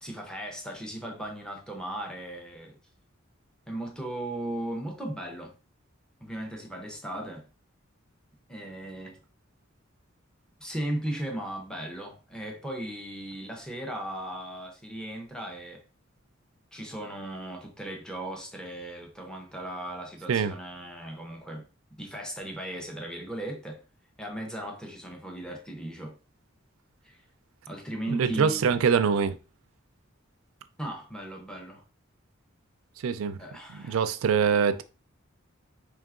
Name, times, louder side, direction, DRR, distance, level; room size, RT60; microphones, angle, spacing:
voice 1, 0.0-2.8 3.7-5.5 6.2-7.5 8.5-9.2 10.6-15.8 16.7-21.7 22.0-23.8 24.2-26.2 27.0-27.2 27.7-28.7 30.8-31.8 33.4-34.0, right 1 dB, 5° left, 0.6 m, -37 dB
voice 2, 28.1-29.4 33.0-33.4 33.7-34.8, right 6 dB, 80° right, 0.4 m, -24 dB
4.4 x 3.4 x 2.4 m
head